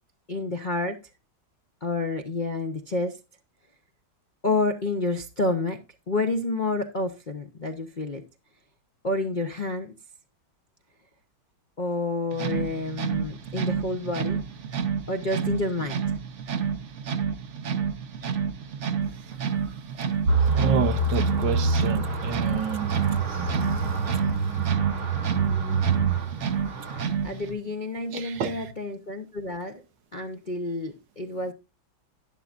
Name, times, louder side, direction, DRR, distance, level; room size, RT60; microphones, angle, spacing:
voice 1, 0.3-1.0 1.8-3.2 4.4-5.8 6.1-8.2 9.0-9.9 11.8-14.4 15.1-16.0 27.2-29.8 30.1-31.5, left 2 dB, 40° left, 0.6 m, -29 dB
sound 1, 12.3-27.5, right 7 dB, 50° right, 0.9 m, -30 dB
sound 2, 20.3-27.0, right 3 dB, 90° right, 4.2 m, -26 dB
voice 2, 20.4-23.9 26.3-26.5 28.1-28.7, right 8 dB, 65° right, 1.4 m, -30 dB
11.5 x 10.5 x 2.5 m
omnidirectional pair, 2.2 m